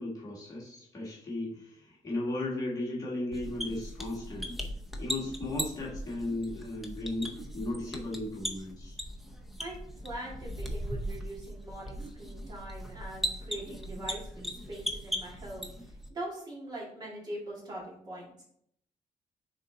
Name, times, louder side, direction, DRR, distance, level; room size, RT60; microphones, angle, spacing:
voice 1, 0.0-4.5 5.0-9.0, left 2 dB, 25° left, -4 dB, 1.7 m, -36 dB
sound 1, 3.3-16.1, equal, ahead, 0.7 m, -39 dB
voice 2, 9.6-18.4, right 1 dB, 30° right, -5 dB, 2.2 m, -42 dB
6.3 x 3.9 x 4.0 m, 0.69 s
cardioid pair, 160°, 13 cm